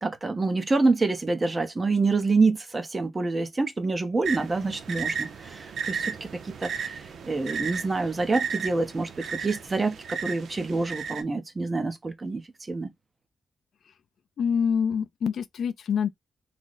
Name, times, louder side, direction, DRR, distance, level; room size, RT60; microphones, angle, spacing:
voice 1, 0.0-9.1 9.4-12.4 12.7-12.9, right 3 dB, 25° right, 0.7 m, -27 dB
sound 1, 4.2-11.2, right 6 dB, 75° right, 0.6 m, -34 dB
voice 2, 14.4-16.1, left 7 dB, 75° left, 0.3 m, -26 dB
3.2 x 2.1 x 3.9 m
wide cardioid pair, 125°, 0 cm